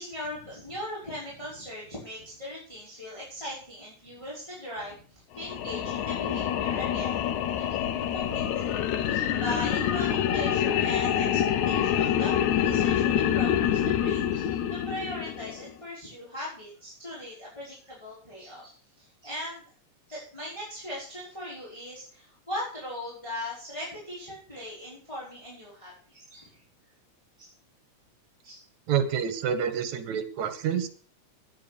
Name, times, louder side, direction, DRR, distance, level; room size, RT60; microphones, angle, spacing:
voice 1, 0.0-7.2 7.6-7.8 8.1-19.6 20.1-26.6 27.4-27.5 28.4-28.6, left 1 dB, 10° left, -6 dB, 5.6 m, -39 dB
sound 1, 5.4-15.7, left 10 dB, 85° left, 2.4 m, -26 dB
voice 2, 28.9-30.9, right 8 dB, 75° right, 11 dB, 2.7 m, -28 dB
10.5 x 10.5 x 6.9 m, 0.43 s
omnidirectional pair, 3.3 m